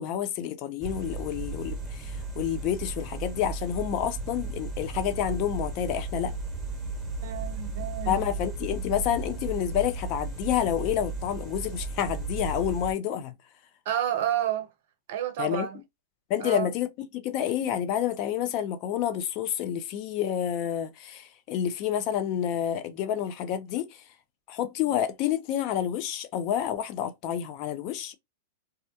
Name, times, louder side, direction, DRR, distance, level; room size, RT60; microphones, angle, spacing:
voice 1, 0.0-6.3 8.1-13.3 15.4-15.7 16.3-24.0 24.5-28.1, left 10 dB, 45° left, 0.5 m, -29 dB
sound 1, 0.8-12.9, right 3 dB, 10° right, 1.1 m, -35 dB
voice 2, 7.2-8.2 13.9-14.7 15.1-15.8 16.4-16.7, right 11 dB, 60° right, 0.5 m, -30 dB
2.3 x 2.1 x 2.7 m
hypercardioid pair, 110°, 0 cm